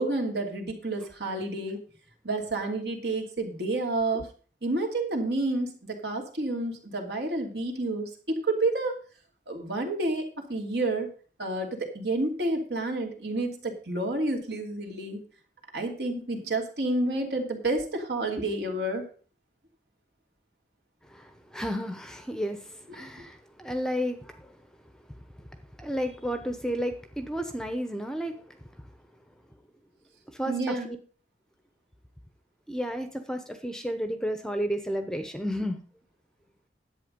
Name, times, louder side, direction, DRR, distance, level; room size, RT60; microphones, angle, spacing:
voice 1, 0.0-1.8 2.2-4.3 4.6-9.0 9.5-10.2 10.5-11.1 11.4-15.2 15.7-19.0 30.5-30.9, right 2 dB, 70° right, 2 dB, 2.7 m, -29 dB
voice 2, 21.1-24.6 25.4-25.5 25.8-28.9 30.3-31.0 32.7-35.8, equal, 5° left, 7 dB, 0.8 m, -32 dB
11.0 x 8.3 x 5.2 m, 0.40 s
head